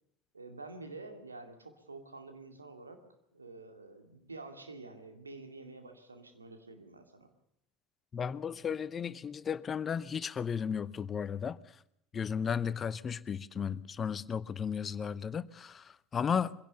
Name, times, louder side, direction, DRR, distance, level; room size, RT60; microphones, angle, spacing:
voice 1, 0.3-3.0 3.3-7.3, right 3 dB, 85° right, 2.2 m, -48 dB
voice 2, 8.1-11.6 12.1-16.5, left 7 dB, 30° left, 0.7 m, -34 dB
23.0 x 16.5 x 6.9 m
figure-of-eight pair, 70°, 0 cm